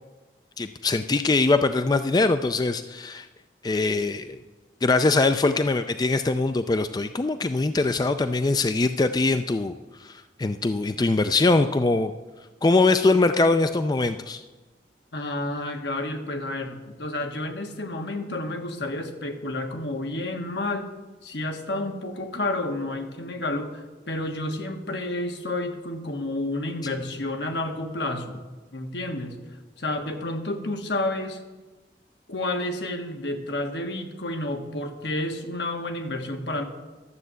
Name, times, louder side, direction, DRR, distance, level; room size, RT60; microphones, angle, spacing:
voice 1, 0.6-3.3 3.6-4.4 4.8-9.7 10.0-12.1 12.6-14.4, left 3 dB, 25° left, 9 dB, 0.4 m, -22 dB
voice 2, 15.1-20.9 21.2-23.8 24.1-28.4 28.7-29.4 29.8-31.4 32.3-36.6, left 1 dB, 75° left, 4 dB, 1.5 m, -30 dB
12.5 x 7.4 x 8.1 m, 1.2 s
head